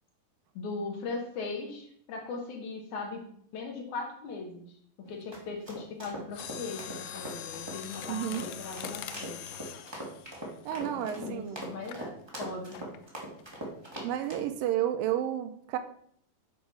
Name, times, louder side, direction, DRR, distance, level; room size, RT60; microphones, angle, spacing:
voice 1, 0.6-3.2 3.5-4.7 5.0-9.4 10.9-12.9, left 3 dB, 65° left, 2 dB, 2.4 m, -39 dB
sound 1, 5.0-14.5, right 1 dB, 30° right, 0.4 m, -42 dB
Mechanisms, 6.3-11.3 11.9-12.1 12.7-13.1 13.4-13.5, left 11 dB, 85° left, 2.4 m, -43 dB
voice 2, 8.1-8.4 10.7-11.8 14.0-15.8, right 11 dB, 80° right, 9 dB, 2.2 m, -31 dB
8.7 x 4.5 x 5.4 m, 0.64 s
omnidirectional pair, 4.2 m